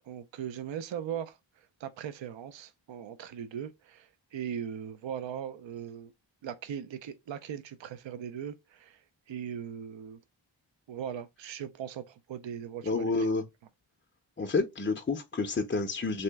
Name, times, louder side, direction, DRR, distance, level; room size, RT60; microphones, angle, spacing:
voice 1, 0.0-6.1 6.4-10.2 10.9-13.3, right 8 dB, 65° right, 0.5 m, -39 dB
voice 2, 12.8-13.4 14.4-16.2, left 3 dB, 25° left, 0.4 m, -29 dB
3.1 x 2.8 x 3.3 m
wide cardioid pair, 85°, 48 cm